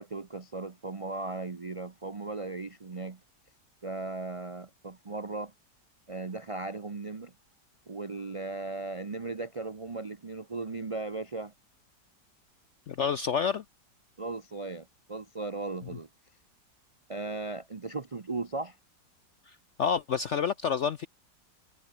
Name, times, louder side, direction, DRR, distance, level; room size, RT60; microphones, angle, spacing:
voice 1, 0.0-3.2 3.8-5.5 6.1-7.3 7.9-11.5 14.2-16.1 17.1-18.8, right 3 dB, 50° right, 0.3 m, -37 dB
voice 2, 12.9-13.6 19.5-21.1, left 7 dB, 65° left, 0.7 m, -29 dB
omnidirectional pair, 1.9 m